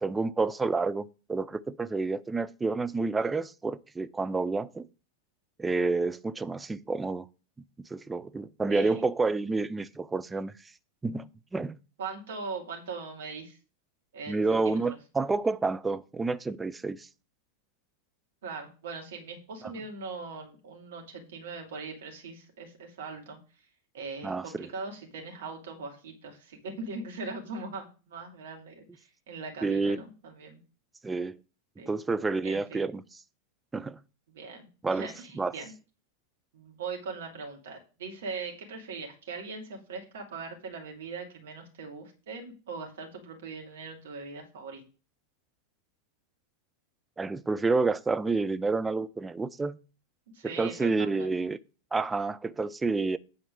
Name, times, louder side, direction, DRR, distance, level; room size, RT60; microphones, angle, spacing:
voice 1, 0.0-4.9 5.6-7.3 7.9-10.5 11.0-11.8 14.3-17.1 24.2-24.7 29.6-30.0 31.0-31.4 31.9-33.0 33.7-34.0 34.8-35.5 47.2-49.8 50.4-51.6 51.9-53.2, right 3 dB, 10° right, 0.5 m, -29 dB
voice 2, 8.7-9.1 12.0-13.6 14.1-14.8 18.4-23.4 23.9-30.6 31.8-31.9 32.4-32.9 34.3-35.7 36.5-44.8 50.3-51.3, right 4 dB, 60° right, 2.7 m, -40 dB
9.2 x 4.3 x 6.6 m
figure-of-eight pair, 90°, 0 cm